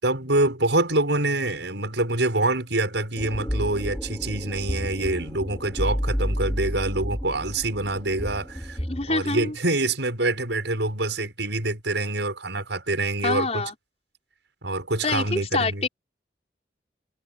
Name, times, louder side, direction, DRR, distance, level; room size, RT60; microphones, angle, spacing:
voice 1, 0.0-8.8 9.1-13.7 14.6-15.9, right 2 dB, 75° right, 6.5 m, -26 dB
sound 1, 3.1-9.1, equal, 5° left, 5.5 m, -30 dB
voice 2, 8.9-9.5 13.2-13.7 15.0-15.9, left 3 dB, 35° left, 4.8 m, -26 dB
head